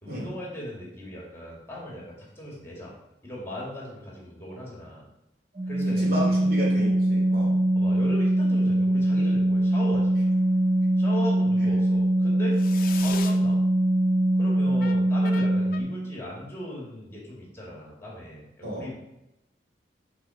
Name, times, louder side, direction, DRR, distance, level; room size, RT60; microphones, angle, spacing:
voice 1, 0.0-3.0 3.2-5.1 5.7-6.3 6.8-7.0 7.8-10.2 11.0-12.6 13.0-13.6 14.4-18.9, equal, 15° left, -4 dB, 2.2 m, -38 dB
Organ, 5.6-16.1, right 1 dB, 40° right, 0.8 m, -22 dB
voice 2, 6.0-7.6 11.6-11.7 18.6-18.9, equal, 55° right, -3 dB, 2.8 m, -33 dB
sound 1, 10.2-10.8 12.5-13.5 14.8-15.8, left 8 dB, 55° left, 0.5 m, -40 dB
8.8 x 4.3 x 4.9 m, 0.90 s
head